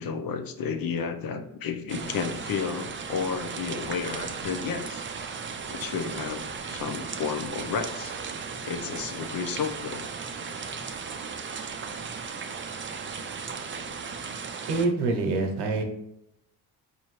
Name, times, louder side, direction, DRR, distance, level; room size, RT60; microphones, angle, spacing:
voice 1, 0.0-5.1 5.7-8.1 8.6-10.1, left 6 dB, 60° left, 8 dB, 0.7 m, -32 dB
sound 1, 1.9-14.9, right 5 dB, 30° right, 0.5 m, -36 dB
voice 2, 14.7-15.8, right 3 dB, 85° right, 4 dB, 0.9 m, -25 dB
4.9 x 2.7 x 3.1 m, 0.82 s
supercardioid pair, 70°, 40 cm